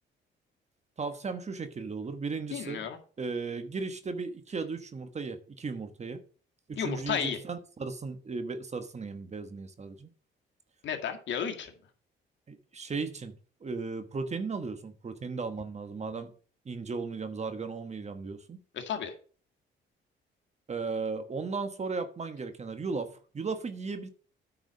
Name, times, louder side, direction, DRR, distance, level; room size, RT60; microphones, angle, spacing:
voice 1, 1.0-2.9 3.2-6.2 6.7-10.1 12.5-13.3 13.6-16.3 16.6-18.6 20.7-24.1, right 4 dB, 35° right, 1.2 m, -36 dB
voice 2, 2.5-3.0 6.8-7.4 10.8-11.7 18.7-19.1, left 8 dB, 70° left, 1.9 m, -33 dB
9.4 x 4.8 x 6.4 m
cardioid pair, 90°, 20 cm